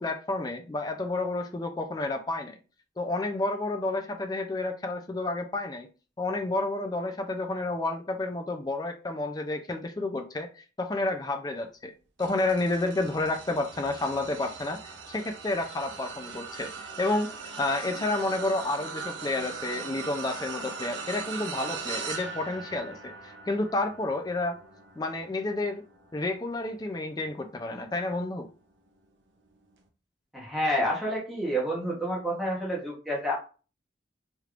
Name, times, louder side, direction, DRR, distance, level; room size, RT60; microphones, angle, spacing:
voice 1, 0.0-2.6 3.0-5.9 6.2-11.9 12.2-14.8 15.1-17.3 17.6-24.6 25.0-25.8 26.1-28.5, left 2 dB, 20° left, 6 dB, 0.4 m, -30 dB
sound 1, 12.2-27.7 28.2-28.5 29.7-29.8, right 5 dB, 75° right, 0.6 m, -40 dB
voice 2, 30.3-33.3, equal, ahead, -4 dB, 1.0 m, -29 dB
3.2 x 3.0 x 2.4 m, 0.36 s
head